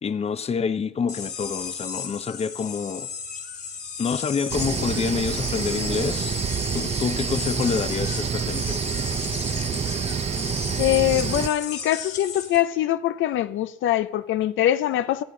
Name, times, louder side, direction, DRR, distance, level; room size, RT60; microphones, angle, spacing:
voice 1, 0.0-3.1 4.0-6.4 6.7-8.8, left 6 dB, 30° left, 0.6 m, -27 dB
sound 1, 1.1-12.6, left 6 dB, 55° left, 2.1 m, -35 dB
sound 2, 4.5-11.5, right 7 dB, 35° right, 0.5 m, -27 dB
voice 2, 10.8-15.2, left 13 dB, 75° left, 0.5 m, -23 dB
23.5 x 8.4 x 3.8 m
cardioid pair, 90°, 20 cm